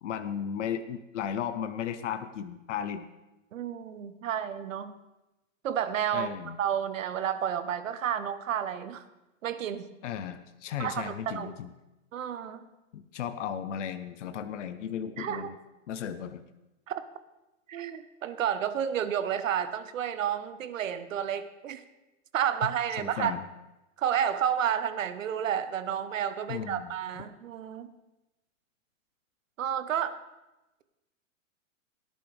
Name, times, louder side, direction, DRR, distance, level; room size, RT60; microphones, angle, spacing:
voice 1, 0.0-3.0 6.1-6.6 10.0-11.7 12.9-15.6 15.9-16.4 22.6-22.7 23.0-23.4 26.5-26.9, left 8 dB, 60° left, 10 dB, 0.8 m, -35 dB
voice 2, 3.5-4.9 5.6-6.3 6.6-9.0 9.4-9.9 10.8-11.5 12.1-12.7 15.2-15.5 16.9-17.0 17.7-21.8 22.3-23.4 24.0-27.9 29.6-30.2, right 9 dB, 70° right, 11 dB, 1.1 m, -31 dB
17.5 x 10.5 x 3.4 m, 0.99 s
hypercardioid pair, 175°, 40 cm